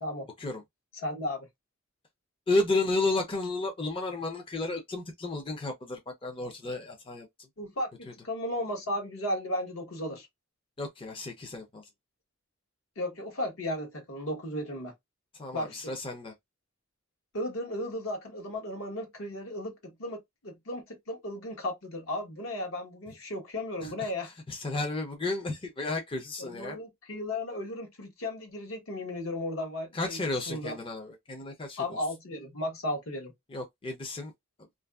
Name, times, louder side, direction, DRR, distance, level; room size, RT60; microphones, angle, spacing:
voice 1, 1.0-1.5 7.6-10.3 13.0-14.9 15.5-16.0 17.3-24.3 26.4-30.2 30.5-30.8 31.8-33.3, left 1 dB, 70° left, 1.1 m, -35 dB
voice 2, 2.5-7.3 10.8-11.8 15.4-16.3 23.8-24.1 24.5-26.8 29.9-31.8 33.5-34.3, left 2 dB, 25° left, 0.5 m, -32 dB
2.5 x 2.5 x 2.2 m
head